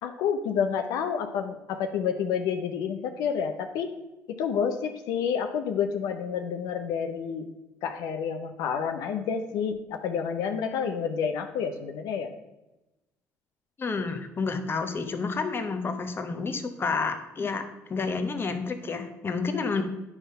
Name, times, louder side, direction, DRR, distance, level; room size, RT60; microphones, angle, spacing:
voice 1, 0.0-3.9 4.3-7.5 7.8-12.3, left 7 dB, 80° left, 6 dB, 0.6 m, -29 dB
voice 2, 13.8-17.6 17.9-19.8, left 4 dB, 35° left, 7 dB, 1.0 m, -30 dB
9.8 x 3.6 x 5.5 m, 1.0 s
supercardioid pair, 85°, 7 cm